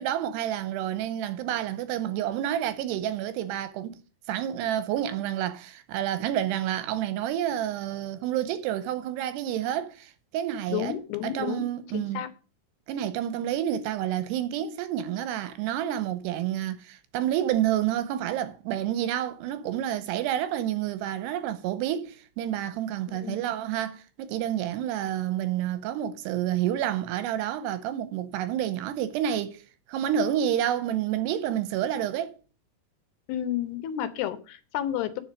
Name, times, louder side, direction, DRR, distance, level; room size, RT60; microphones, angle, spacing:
voice 1, 0.0-4.0 4.3-10.9 11.2-12.2 12.9-29.6 29.9-32.3, right 11 dB, 90° right, 2.9 m, -29 dB
voice 2, 10.7-11.7 11.9-12.3 23.1-23.4 33.3-35.2, left 11 dB, 80° left, 2.9 m, -31 dB
8.8 x 5.7 x 6.3 m
omnidirectional pair, 4.8 m